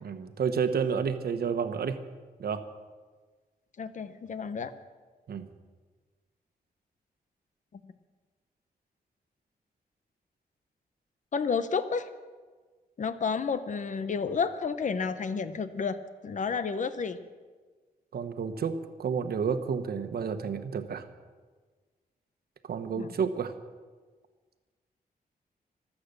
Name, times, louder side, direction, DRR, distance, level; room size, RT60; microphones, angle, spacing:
voice 1, 0.0-2.0 2.4-2.6 5.3-5.5 18.1-21.1 22.7-23.5, right 6 dB, 75° right, 9 dB, 1.2 m, -30 dB
voice 2, 3.8-4.7 11.3-12.1 13.0-17.2 23.0-23.1, left 5 dB, 50° left, 12 dB, 0.9 m, -31 dB
25.0 x 8.5 x 6.8 m, 1.4 s
wide cardioid pair, 130°, 16 cm